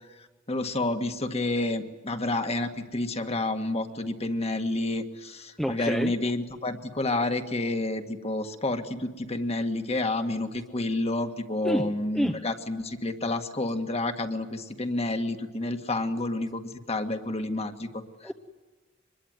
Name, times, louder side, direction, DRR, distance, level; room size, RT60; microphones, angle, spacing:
voice 1, 0.5-18.3, left 2 dB, 30° left, 6 dB, 1.9 m, -29 dB
voice 2, 5.6-6.1 11.6-11.9 12.1-12.4 18.2-18.3, equal, ahead, 5 dB, 1.0 m, -27 dB
25.0 x 21.5 x 9.5 m, 1.3 s
head